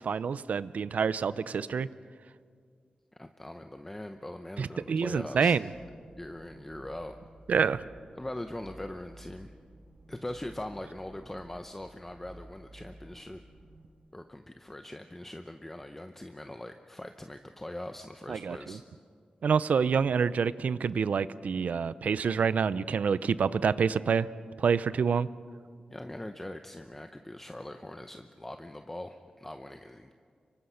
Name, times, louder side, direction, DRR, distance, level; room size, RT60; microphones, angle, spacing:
voice 1, 0.0-1.9 4.6-5.6 7.5-7.8 18.3-18.8 19.4-24.3 24.6-25.3, right 6 dB, 75° right, 16 dB, 0.6 m, -27 dB
voice 2, 3.2-5.6 6.2-7.2 8.1-9.5 10.1-13.4 14.1-18.8 25.9-30.1, left 1 dB, 15° left, 6 dB, 0.8 m, -41 dB
sound 1, 5.7-13.9, right 1 dB, 45° right, 4.7 m, -53 dB
25.0 x 24.0 x 5.7 m, 2.1 s
wide cardioid pair, 110°, 3 cm